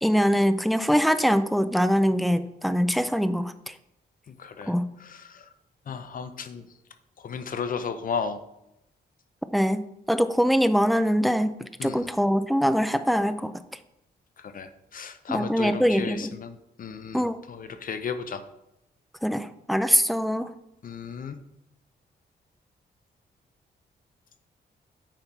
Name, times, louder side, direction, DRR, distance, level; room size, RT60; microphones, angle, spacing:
voice 1, 0.0-3.7 4.7-4.9 9.5-9.8 10.1-13.5 15.3-16.3 17.1-17.4 19.2-20.5, equal, ahead, 11 dB, 0.4 m, -23 dB
voice 2, 4.3-4.7 5.0-5.5 5.9-6.7 7.2-8.4 11.8-12.1 14.4-18.4 20.8-21.4, left 6 dB, 50° left, 10 dB, 0.7 m, -34 dB
9.1 x 5.8 x 4.6 m, 0.85 s
wide cardioid pair, 140°, 18 cm